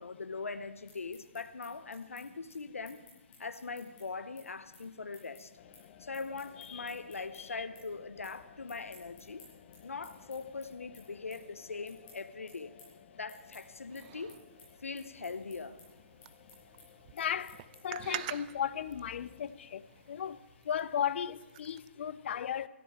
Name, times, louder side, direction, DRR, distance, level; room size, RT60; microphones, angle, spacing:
voice 1, 0.0-3.0 3.4-5.5 6.0-9.4 9.8-12.7 13.2-14.4 14.8-15.8, left 4 dB, 85° left, 0.9 m, -41 dB
sound 1, 0.9-7.4 7.7-8.4 8.6-18.0, left 3 dB, 25° left, 7.6 m, -59 dB
sound 2, 5.5-20.4, left 8 dB, 40° left, 1.2 m, -59 dB
sound 3, 13.4-21.9, right 15 dB, 35° right, 0.5 m, -48 dB
voice 2, 17.1-22.7, left 9 dB, 55° left, 0.6 m, -36 dB
22.5 x 13.0 x 4.7 m
hypercardioid pair, 135°, 7 cm